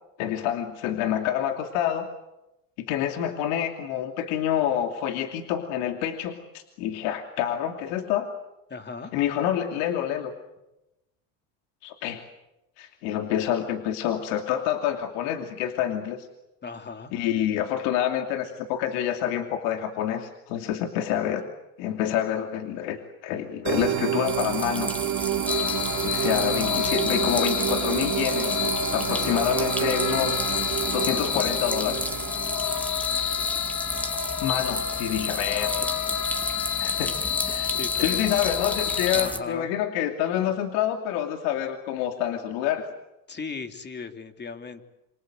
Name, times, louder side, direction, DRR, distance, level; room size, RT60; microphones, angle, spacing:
voice 1, 0.2-2.1 2.8-8.3 9.1-10.3 11.8-12.2 12.8-16.3 17.1-21.4 21.8-24.9 26.0-30.5 30.9-32.2 34.4-35.8 36.8-37.1 37.4-42.9, left 10 dB, 75° left, 5 dB, 2.8 m, -27 dB
voice 2, 8.7-9.1 16.6-17.1 37.7-38.4 39.1-39.7 43.3-44.8, left 4 dB, 25° left, 7 dB, 3.1 m, -37 dB
sound 1, 23.6-33.0, right 12 dB, 50° right, 2.8 m, -29 dB
sound 2, 24.3-39.4, equal, 5° left, 2.3 m, -32 dB
sound 3, 25.5-39.3, left 9 dB, 50° left, 2.7 m, -29 dB
27.5 x 26.5 x 7.9 m, 0.93 s
supercardioid pair, 115°, 38 cm